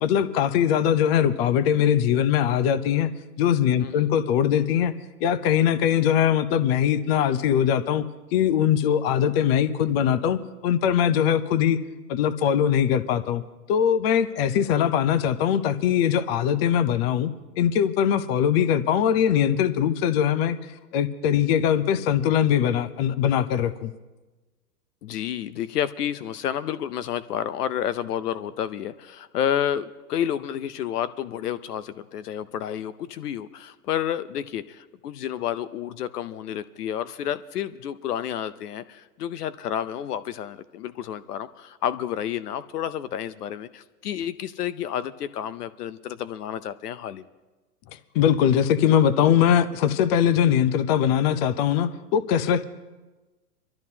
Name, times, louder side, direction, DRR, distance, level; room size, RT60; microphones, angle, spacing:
voice 1, 0.0-3.1 3.4-4.9 5.2-8.0 8.3-11.8 12.1-13.4 13.7-17.3 17.6-20.6 20.9-23.9 48.1-52.6, left 9 dB, 40° left, 13 dB, 0.8 m, -21 dB
voice 2, 25.0-47.2, left 10 dB, 70° left, 15 dB, 0.8 m, -30 dB
24.0 x 13.0 x 2.8 m, 1.2 s
hypercardioid pair, 130°, 48 cm